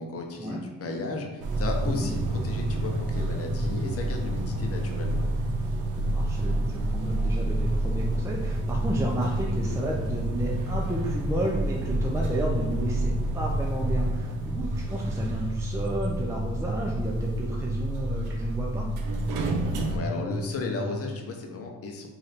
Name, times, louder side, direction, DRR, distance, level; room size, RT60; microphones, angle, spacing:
voice 1, 0.0-5.2 19.8-22.1, left 3 dB, 50° left, 2 dB, 0.8 m, -34 dB
sound 1, 1.4-21.0, left 1 dB, 85° left, 0.8 m, -33 dB
sound 2, 1.4-20.0, right 2 dB, 80° right, 0.6 m, -30 dB
voice 2, 6.0-18.9, right 1 dB, 10° right, -2 dB, 0.5 m, -32 dB
3.3 x 2.6 x 4.0 m, 1.2 s
cardioid pair, 90°, 30 cm